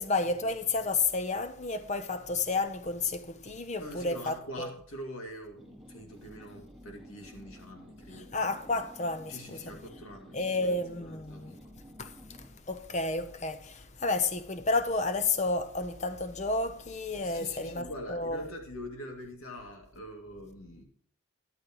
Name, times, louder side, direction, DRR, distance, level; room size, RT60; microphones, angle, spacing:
voice 1, 0.0-4.7 8.1-9.8 10.3-11.6 12.0-18.5, left 3 dB, 30° left, 0.8 m, -31 dB
voice 2, 3.8-8.3 9.3-11.8 17.2-20.8, equal, 75° left, 2.4 m, -44 dB
sound 1, 5.6-12.6, equal, ahead, 1.7 m, -53 dB
12.5 x 11.5 x 3.1 m
head